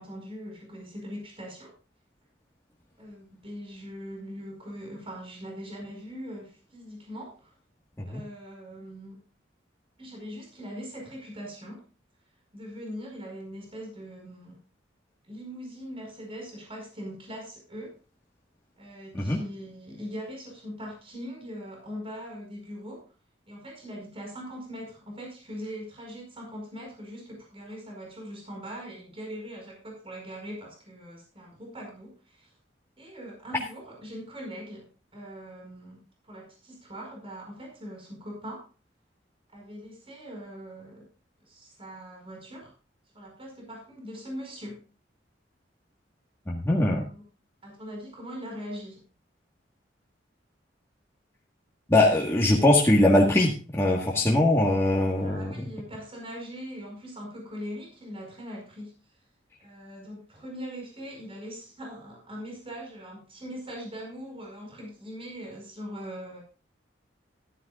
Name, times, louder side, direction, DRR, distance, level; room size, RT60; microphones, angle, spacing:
voice 1, 0.0-1.7 3.0-7.5 8.0-9.2 10.0-11.8 12.5-14.6 15.3-17.9 18.8-23.1 23.5-32.5 33.0-38.6 39.5-41.0 41.4-42.7 43.1-44.8 47.1-47.2 47.6-49.0 55.2-59.0 59.6-66.4, equal, 30° right, 0 dB, 5.0 m, -41 dB
voice 2, 46.5-47.0 51.9-55.6, left 1 dB, 15° left, -3 dB, 1.6 m, -22 dB
14.0 x 13.0 x 2.5 m, 0.35 s
head